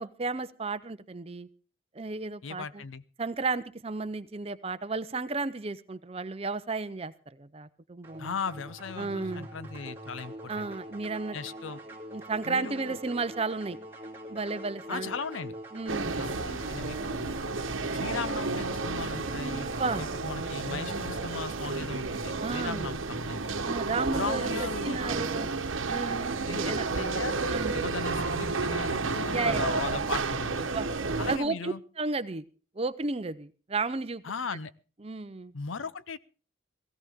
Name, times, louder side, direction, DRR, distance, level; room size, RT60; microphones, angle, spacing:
voice 1, 0.0-1.5 2.0-2.8 3.2-8.3 9.0-9.4 10.5-11.4 12.1-13.8 14.3-15.1 15.7-16.3 19.8-20.0 22.4-22.9 23.6-25.5 25.9-26.9 27.5-27.8 29.3-29.6 30.7-30.9 31.3-32.4 32.8-34.2 35.0-35.5, right 3 dB, 30° right, 14 dB, 0.6 m, -33 dB
voice 2, 2.4-3.0 8.2-10.7 11.3-11.8 12.5-13.0 14.9-15.5 16.2-17.4 17.9-19.7 20.0-23.6 24.1-25.0 26.4-27.4 27.7-30.6 31.2-31.8 34.2-34.7 35.5-36.2, left 5 dB, 80° left, 16 dB, 0.6 m, -37 dB
sound 1, 8.0-21.7, equal, 10° right, 2.5 m, -44 dB
sound 2, 15.9-31.4, right 3 dB, 85° right, 1.1 m, -31 dB
16.5 x 16.5 x 3.6 m, 0.37 s
head